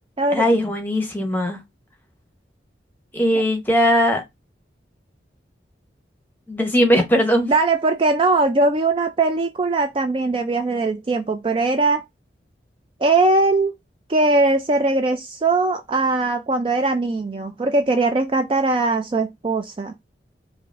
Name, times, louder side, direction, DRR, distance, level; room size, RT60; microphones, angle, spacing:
voice 1, 0.3-1.6 3.1-4.2 6.5-7.5, equal, 10° left, 0.9 m, -19 dB
voice 2, 7.5-12.0 13.0-13.7 14.1-19.9, right 3 dB, 30° right, 0.3 m, -20 dB
4.9 x 2.5 x 2.4 m
head